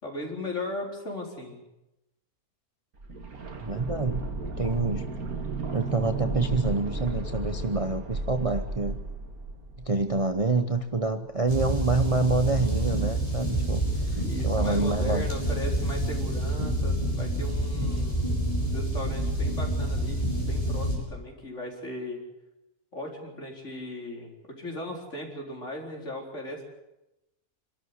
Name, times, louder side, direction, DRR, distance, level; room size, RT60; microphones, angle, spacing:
voice 1, 0.0-1.6 14.2-18.3 18.6-22.2 22.9-26.6, left 1 dB, 50° left, 0 dB, 4.8 m, -37 dB
sound 1, 3.0-10.8 11.0-11.1, right 3 dB, 75° right, 2.5 m, -34 dB
voice 2, 3.6-4.3 4.6-5.1 5.7-9.0 9.8-15.3, right 3 dB, 25° right, 7 dB, 0.9 m, -27 dB
sound 2, 11.5-21.0, right 1 dB, 20° left, 7.2 m, -28 dB
26.5 x 13.0 x 9.6 m, 0.93 s
omnidirectional pair, 1.6 m